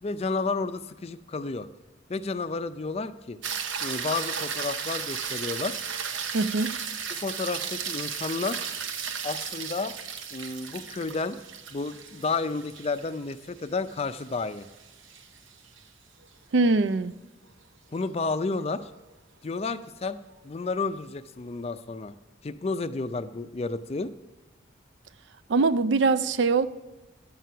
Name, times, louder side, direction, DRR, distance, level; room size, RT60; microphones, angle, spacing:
voice 1, 0.0-1.7 2.1-3.4 3.8-5.8 7.1-8.7 9.2-9.9 10.3-11.4 11.7-14.7 17.9-18.9 19.4-22.1 22.4-24.1, left 3 dB, 35° left, 12 dB, 0.4 m, -31 dB
sound 1, 3.4-15.8 20.3-20.4, right 7 dB, 85° right, 0.8 m, -35 dB
voice 2, 6.3-6.7 16.5-17.1 25.5-26.7, right 3 dB, 70° right, 15 dB, 0.4 m, -22 dB
10.5 x 7.6 x 5.6 m, 1.2 s
head